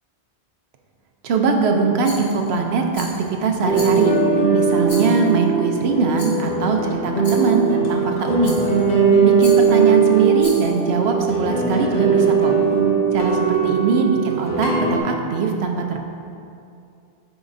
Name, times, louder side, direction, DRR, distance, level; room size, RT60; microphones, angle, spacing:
voice 1, 1.2-4.2 4.5-8.6 9.2-12.5 13.1-16.0, right 4 dB, 75° right, 3 dB, 0.9 m, -21 dB
Rattle, 2.0-2.5 2.9-3.3 3.7-4.3 4.8-5.4 6.2-6.5 7.2-7.6 8.4-8.9 9.4-9.8 10.4-10.8, left 1 dB, 80° left, 1.7 m, -37 dB
sound 1, 3.6-15.0, right 5 dB, 40° left, 1.0 m, -19 dB
8.9 x 4.9 x 2.6 m, 2.5 s
omnidirectional pair, 1.1 m